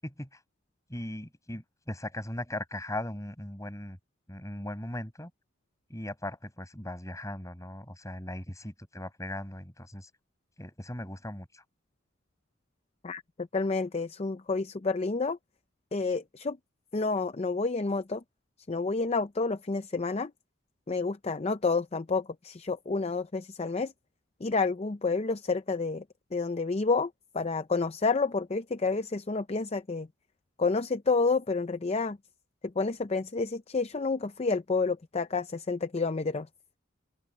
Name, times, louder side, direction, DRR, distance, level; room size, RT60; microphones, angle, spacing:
voice 1, 0.0-0.4 0.9-4.0 4.3-5.3 5.9-10.1 10.6-11.6, left 1 dB, 15° left, 7.3 m, -38 dB
voice 2, 13.0-15.4 15.9-16.6 16.9-18.2 18.7-20.3 20.9-23.9 24.4-26.0 26.3-30.1 30.6-32.2 32.6-36.5, left 4 dB, 30° left, 0.5 m, -29 dB
open air
head